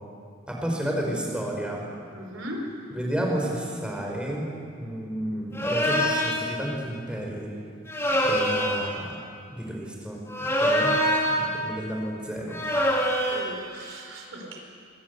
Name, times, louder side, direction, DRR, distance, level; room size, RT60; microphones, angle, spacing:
voice 1, 0.5-1.9 2.9-7.5 8.2-9.2 9.5-10.2 10.5-10.9 11.3-12.6, right 1 dB, 5° right, -1 dB, 5.1 m, -31 dB
voice 2, 2.1-2.7 13.3-14.6, equal, 70° right, 2 dB, 4.9 m, -38 dB
sound 1, 5.6-6.5 7.9-8.9 10.3-11.5 12.5-13.5, equal, 10° left, 3.7 m, -24 dB
26.5 x 25.5 x 8.4 m, 2.3 s
head